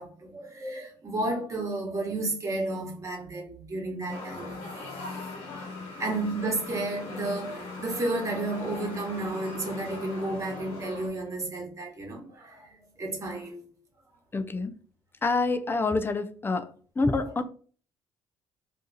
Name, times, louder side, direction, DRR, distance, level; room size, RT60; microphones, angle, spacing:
voice 1, 0.0-5.2 5.5-5.6 6.0-13.6 17.2-17.3, right 2 dB, 30° right, 1.3 m, -32 dB
sound 1, 4.1-11.1, left 3 dB, 90° left, 0.9 m, -39 dB
voice 2, 14.3-14.7 15.2-16.7 17.0-17.4, left 3 dB, 20° left, 0.4 m, -27 dB
2.6 x 2.4 x 4.0 m
supercardioid pair, 70°, 10 cm